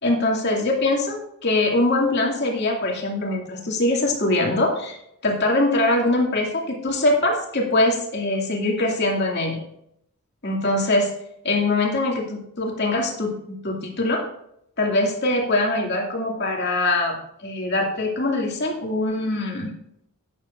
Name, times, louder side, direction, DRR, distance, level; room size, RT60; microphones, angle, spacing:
voice 1, 0.0-5.0 5.2-9.6 10.4-11.1 11.4-14.2 14.8-17.2 17.4-19.7, left 2 dB, 50° left, 0 dB, 2.4 m, -22 dB
12.0 x 9.6 x 2.6 m, 0.74 s
head